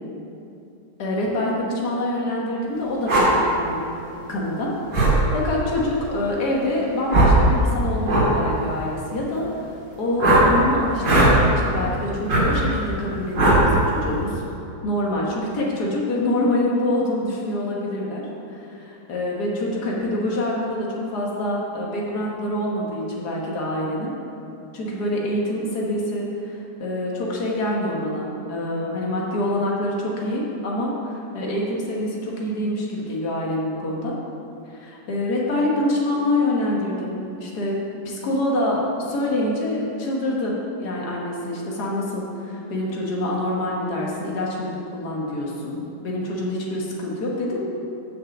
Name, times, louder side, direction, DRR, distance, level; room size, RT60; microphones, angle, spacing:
voice 1, 1.0-3.8 4.2-9.5 10.0-14.4 14.8-24.1 24.7-34.2 34.7-47.6, left 1 dB, 70° left, -3 dB, 1.9 m, -26 dB
sound 1, 3.1-3.3 4.9-5.2 7.1-7.4 8.0-8.3 10.2-10.5 11.0-11.3 12.3-12.5 13.4-13.6, right 2 dB, 75° right, 2.3 m, -16 dB
6.8 x 6.1 x 7.1 m, 2.8 s
omnidirectional pair, 1.8 m